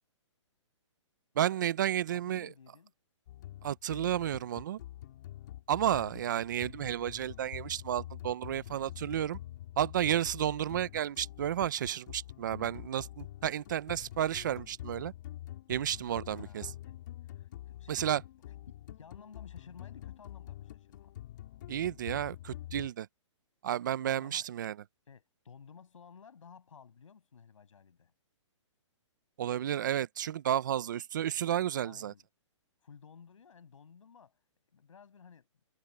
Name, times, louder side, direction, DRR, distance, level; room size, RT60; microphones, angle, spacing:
voice 1, 1.4-2.5 3.6-4.8 5.7-9.4 9.8-15.1 15.7-16.7 17.9-18.2 21.7-23.1 23.6-24.8 29.4-32.1, right 11 dB, 40° right, 0.5 m, -32 dB
voice 2, 2.1-2.9 16.2-17.0 17.2-18.2 18.5-21.1 24.0-24.5 25.1-28.1 31.8-32.2 32.8-34.4 34.7-35.5, left 6 dB, 85° left, 6.0 m, -55 dB
sound 1, 3.3-22.9, left 13 dB, 35° left, 2.8 m, -46 dB
hypercardioid pair, 170°, 16 cm